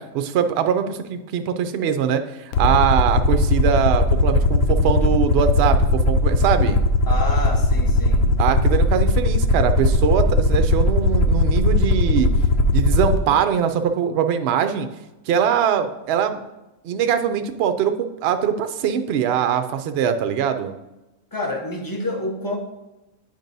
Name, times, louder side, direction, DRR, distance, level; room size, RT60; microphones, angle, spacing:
voice 1, 0.0-6.8 8.4-12.3 12.7-14.9 15.3-16.5 16.8-20.7, right 8 dB, 65° right, 9 dB, 0.6 m, -22 dB
Aircraft, 2.5-13.2, left 2 dB, 70° left, 0.9 m, -18 dB
voice 2, 7.1-8.3 21.3-22.6, left 2 dB, 15° left, 0 dB, 0.9 m, -28 dB
9.0 x 5.2 x 2.6 m, 1.0 s
omnidirectional pair, 1.5 m